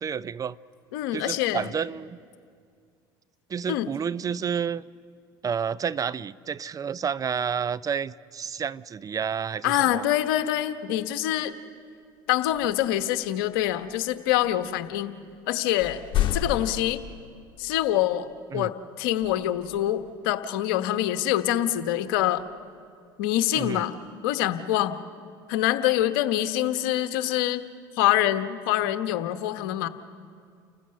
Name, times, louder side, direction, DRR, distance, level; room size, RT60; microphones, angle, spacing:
voice 1, 0.0-0.6 1.1-2.2 3.5-4.8 5.4-10.0 18.5-18.7 23.5-23.9, right 7 dB, 30° right, 17 dB, 0.5 m, -30 dB
voice 2, 0.9-1.6 3.7-3.9 9.6-11.5 12.3-15.1 15.5-16.0 16.3-17.0 17.6-22.4 23.2-23.9 24.2-25.0 25.5-27.6 28.0-29.9, left 13 dB, 75° left, 10 dB, 1.1 m, -25 dB
sound 1, 11.2-11.3 12.4-15.4 15.8-17.9 19.2-20.3 22.1-22.7 23.3-24.2, left 11 dB, 45° left, 2.2 m, -34 dB
29.5 x 15.5 x 6.6 m, 2.2 s
hypercardioid pair, 75°, 12 cm